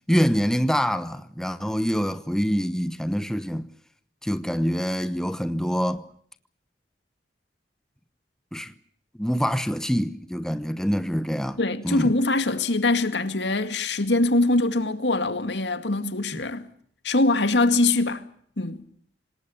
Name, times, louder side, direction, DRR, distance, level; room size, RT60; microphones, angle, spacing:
voice 1, 0.1-3.7 4.2-6.1 8.5-8.7 9.2-11.6 11.8-12.1, equal, 5° left, 1.0 m, -25 dB
voice 2, 11.6-16.7 17.0-18.3 18.6-18.9, left 2 dB, 85° left, 2.2 m, -23 dB
27.0 x 19.5 x 7.1 m
head